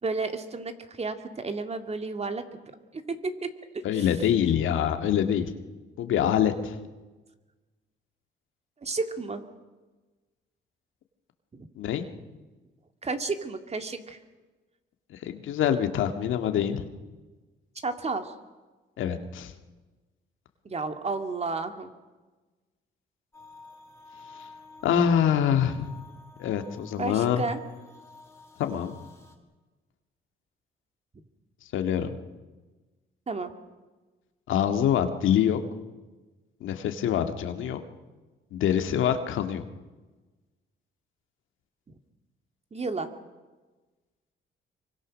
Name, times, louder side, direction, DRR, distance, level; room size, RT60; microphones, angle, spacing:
voice 1, 0.0-2.4 2.9-4.1 8.8-9.4 11.5-11.7 13.0-14.2 17.8-18.3 20.6-21.9 27.0-27.6 33.3-33.5 42.7-43.1, right 3 dB, 30° right, 7 dB, 2.3 m, -32 dB
voice 2, 3.8-5.5 6.0-6.8 11.8-12.0 15.1-16.8 19.0-19.5 24.4-24.5 24.8-25.9 26.4-27.4 28.6-29.0 31.7-32.2 34.5-35.6 36.6-37.8 38.5-39.6, left 9 dB, 80° left, 7 dB, 2.0 m, -25 dB
sound 1, 23.3-29.3, left 3 dB, 15° left, 4.6 m, -50 dB
25.5 x 24.0 x 6.4 m, 1.2 s
cardioid pair, 90°, 20 cm